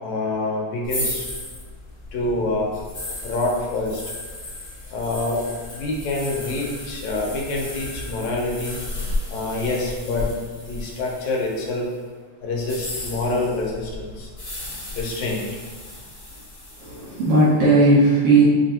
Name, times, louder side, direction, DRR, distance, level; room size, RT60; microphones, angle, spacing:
voice 1, 0.0-1.3 2.1-2.7 3.2-4.0 4.9-5.4 5.7-8.8 9.3-10.3 10.7-11.9 12.4-14.3 15.0-15.4, left 2 dB, 75° left, -1 dB, 2.0 m, -26 dB
sound 1, 0.8-11.8 12.5-17.4, left 1 dB, 30° left, 1.3 m, -34 dB
voice 2, 16.8-18.4, right 2 dB, 65° right, -8 dB, 1.6 m, -16 dB
6.0 x 3.0 x 2.8 m, 1.5 s
omnidirectional pair, 3.3 m